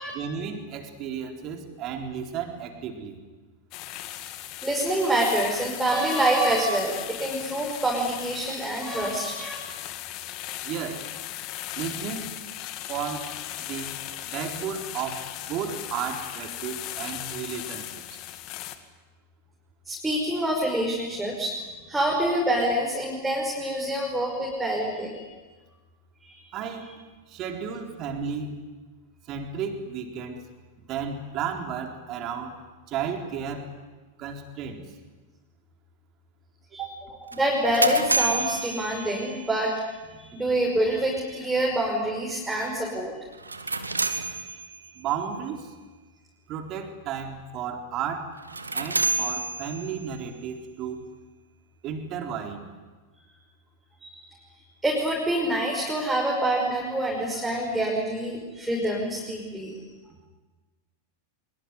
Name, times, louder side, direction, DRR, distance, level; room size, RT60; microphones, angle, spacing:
voice 1, 0.1-3.2 10.6-11.1 11.8-12.3 12.9-13.3 13.6-13.9 14.3-18.2 26.5-26.9 27.3-28.5 29.3-30.4 30.9-32.6 32.9-33.7 34.2-34.8 36.8-37.0 45.0-45.7 46.5-48.3 48.7-51.0 51.8-52.6, right 7 dB, 35° right, 4 dB, 4.0 m, -33 dB
sound 1, 3.7-18.8, left 13 dB, 40° left, 2.1 m, -37 dB
voice 2, 4.6-9.5 19.9-25.2 26.2-26.4 36.7-36.8 37.3-39.8 40.2-43.1 54.0-54.3 54.8-59.8, right 1 dB, 5° right, -2 dB, 5.9 m, -26 dB
sound 2, 37.3-39.6 43.3-45.0 48.4-50.2, right 3 dB, 80° right, 1.8 m, -29 dB
24.5 x 23.5 x 9.9 m, 1.3 s
figure-of-eight pair, 90°, 0 cm